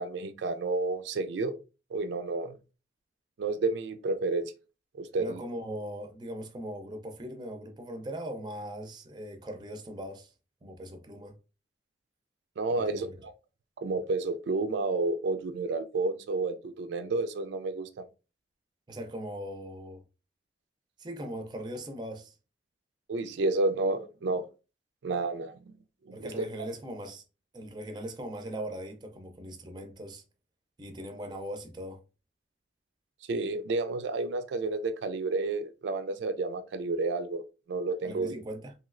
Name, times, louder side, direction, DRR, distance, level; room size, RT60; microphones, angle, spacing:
voice 1, 0.0-1.5 1.9-2.6 3.4-4.5 4.9-5.4 12.6-13.1 13.8-17.9 23.1-24.4 25.0-25.5 26.1-26.7 33.3-37.4 37.7-38.4, right 3 dB, 85° right, 0.4 m, -30 dB
voice 2, 5.2-10.3 10.6-11.3 12.7-13.1 18.9-20.0 21.0-22.3 26.1-27.2 27.5-30.2 30.8-32.0 38.0-38.7, equal, 25° right, 0.4 m, -39 dB
3.0 x 2.7 x 2.4 m
head